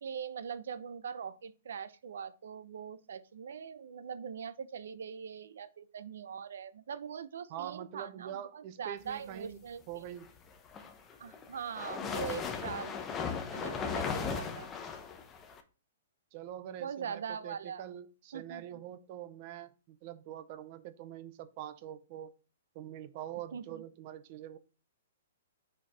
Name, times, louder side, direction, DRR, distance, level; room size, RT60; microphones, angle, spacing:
voice 1, 0.0-10.1 11.2-12.9 13.5-14.7 16.8-17.8 18.3-18.6 23.5-23.6, right 7 dB, 80° right, 0.7 m, -42 dB
voice 2, 7.5-9.6 9.9-10.3 16.3-22.3 22.7-24.6, right 11 dB, 35° right, 0.6 m, -44 dB
sound 1, 10.5-15.6, left 6 dB, 15° left, 0.8 m, -37 dB
6.2 x 4.6 x 3.3 m
hypercardioid pair, 160°, 0 cm